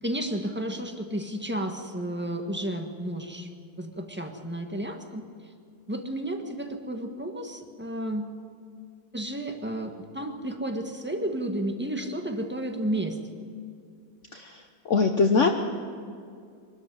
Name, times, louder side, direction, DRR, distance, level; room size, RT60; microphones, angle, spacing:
voice 1, 0.0-3.5 3.8-5.2 5.9-8.3 9.1-13.2, right 1 dB, 5° right, 4 dB, 1.5 m, -32 dB
voice 2, 14.3-15.5, left 4 dB, 50° left, 5 dB, 1.2 m, -23 dB
24.0 x 13.0 x 9.9 m, 2.3 s
omnidirectional pair, 1.8 m